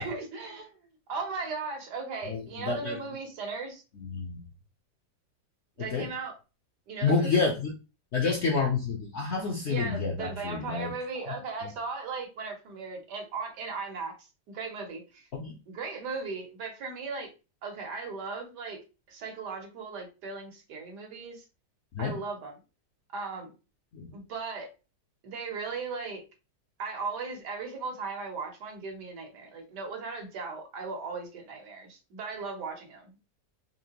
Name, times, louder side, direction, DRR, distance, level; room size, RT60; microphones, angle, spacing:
voice 1, 0.0-3.8 5.8-6.3 6.9-7.5 9.6-15.3 15.7-17.3 17.6-18.8 19.1-21.4 22.0-22.6 23.1-23.5 24.1-24.7 25.2-26.2 26.8-33.2, right 4 dB, 75° right, 1.6 m, -37 dB
voice 2, 2.3-3.0 4.0-4.4 5.8-6.1 7.0-7.7 8.1-10.9 15.4-15.6 21.9-22.2 23.9-24.1, left 4 dB, 60° left, 0.7 m, -29 dB
4.2 x 2.9 x 2.9 m
omnidirectional pair, 1.8 m